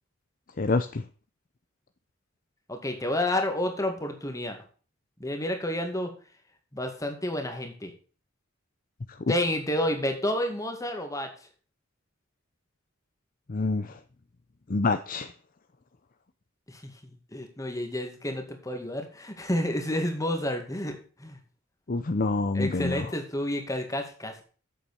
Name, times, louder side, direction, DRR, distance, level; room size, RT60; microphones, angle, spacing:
voice 1, 0.6-1.0 13.5-14.0 14.7-15.3 21.9-23.1, left 3 dB, 40° left, 10 dB, 0.6 m, -27 dB
voice 2, 2.7-4.6 5.2-6.1 6.7-7.9 9.3-11.3 16.7-16.9 17.3-21.4 22.5-24.4, left 1 dB, 15° left, 4 dB, 2.1 m, -30 dB
8.4 x 7.2 x 6.9 m, 0.39 s
head